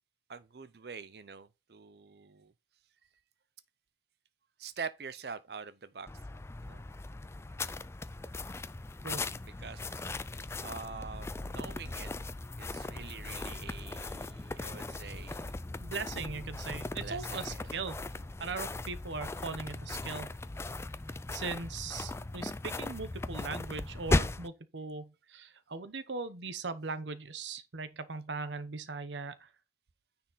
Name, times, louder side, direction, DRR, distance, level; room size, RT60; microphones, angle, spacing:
voice 1, 0.3-2.5 4.6-6.1 6.6-6.9 9.4-10.0 10.6-12.1 12.6-15.6 17.0-17.7 18.2-18.3, right 5 dB, 60° right, 0.6 m, -45 dB
sound 1, 6.1-24.5, left 2 dB, 15° left, 0.3 m, -38 dB
voice 2, 15.8-18.0 18.4-20.4 21.3-29.5, right 4 dB, 90° right, 0.9 m, -39 dB
9.7 x 4.3 x 4.0 m
head